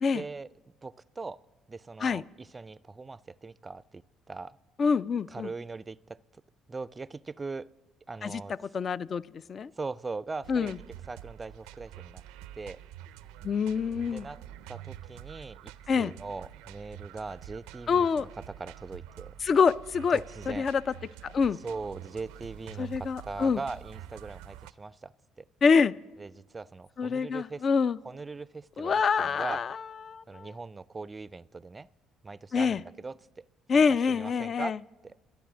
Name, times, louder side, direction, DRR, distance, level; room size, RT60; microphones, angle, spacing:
voice 1, 0.1-0.5 0.8-1.4 1.7-4.0 4.3-4.6 5.3-6.2 6.7-7.7 8.1-8.5 9.8-10.7 11.1-12.2 12.6-12.8 14.1-14.4 14.7-19.3 20.1-20.7 21.6-25.1 25.4-25.5 26.2-27.6 28.0-29.6 30.3-31.9 32.2-33.4 34.1-34.8 35.0-35.2, right 3 dB, 25° right, 21 dB, 0.4 m, -40 dB
voice 2, 4.8-5.5 8.2-8.4 8.7-9.2 9.5-9.7 10.5-10.8 13.4-14.3 15.9-16.1 17.9-18.3 19.4-20.2 20.5-20.8 21.2-21.6 22.8-23.6 25.6-25.9 27.0-28.0 28.8-29.8 30.1-30.5 32.5-32.8 33.7-34.8, left 5 dB, 45° left, 18 dB, 0.4 m, -26 dB
sound 1, 10.4-24.7, right 12 dB, 90° right, 0.4 m, -47 dB
12.5 x 10.5 x 6.1 m, 1.3 s
supercardioid pair, 70°, 0 cm